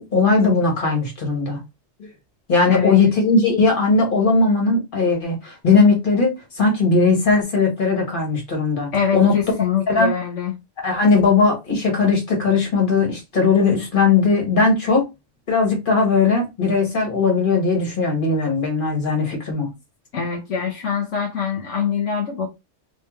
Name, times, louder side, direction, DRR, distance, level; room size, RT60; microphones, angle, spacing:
voice 1, 0.0-1.6 2.5-9.4 9.9-10.1 10.8-15.0 15.5-19.7, left 4 dB, 45° left, 1.7 m, -18 dB
voice 2, 8.9-10.5 20.1-22.5, left 7 dB, 80° left, 1.2 m, -24 dB
3.6 x 3.1 x 3.1 m
omnidirectional pair, 1.2 m